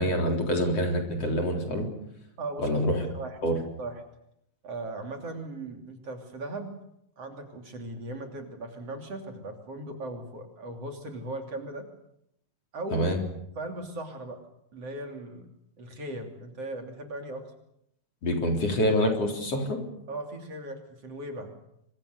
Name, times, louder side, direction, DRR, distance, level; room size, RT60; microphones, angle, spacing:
voice 1, 0.0-1.9 2.6-3.0 3.4-3.6 12.9-13.2 18.2-19.8, equal, 50° left, 2 dB, 4.7 m, -26 dB
voice 2, 2.4-3.4 3.8-4.0 4.6-6.8 7.2-11.8 12.7-13.1 13.6-14.4 14.7-15.5 15.8-17.4 20.1-21.5, right 2 dB, 50° right, 3 dB, 3.9 m, -38 dB
27.0 x 24.5 x 6.8 m, 0.76 s
omnidirectional pair, 3.7 m